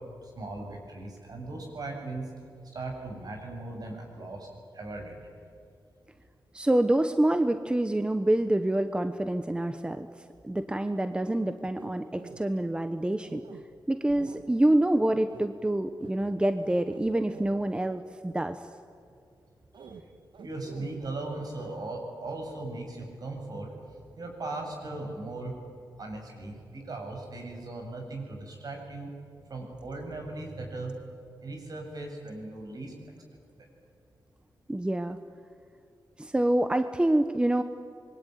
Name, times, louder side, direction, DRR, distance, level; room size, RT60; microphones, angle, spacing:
voice 1, 0.0-2.3 2.6-5.3 19.7-20.0 20.4-25.6 26.0-29.1 29.5-31.0 31.4-32.9 33.6-33.7, right 2 dB, 55° right, 2 dB, 7.4 m, -38 dB
voice 2, 6.5-13.5 13.9-18.6 34.7-35.2 36.2-37.6, right 1 dB, 10° right, 9 dB, 1.0 m, -26 dB
sound 1, 11.6-12.4 13.2-13.6 14.1-14.4 14.9-15.0 15.3-15.5 16.0-17.6 19.7-20.0 20.3-21.1, right 6 dB, 90° right, 1.9 m, -47 dB
26.0 x 23.0 x 9.4 m, 2.4 s
wide cardioid pair, 125°, 8 cm